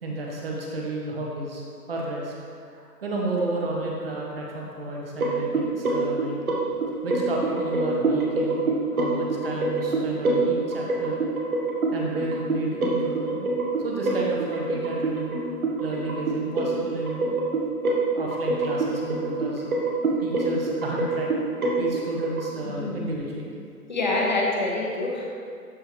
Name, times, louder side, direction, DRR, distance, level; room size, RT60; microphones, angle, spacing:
voice 1, 0.0-1.6 1.9-2.3 2.6-6.3 7.0-8.7 8.9-11.2 11.9-13.4 13.8-15.3 15.8-17.3 18.1-19.7 20.2-21.3 21.8-23.5, right 2 dB, 35° right, -2 dB, 1.3 m, -32 dB
sound 1, 5.2-22.5, right 3 dB, 60° right, 1.3 m, -26 dB
voice 2, 23.9-25.2, left 2 dB, 30° left, -2 dB, 0.9 m, -25 dB
12.5 x 4.3 x 3.2 m, 2.3 s
hypercardioid pair, 160°, 48 cm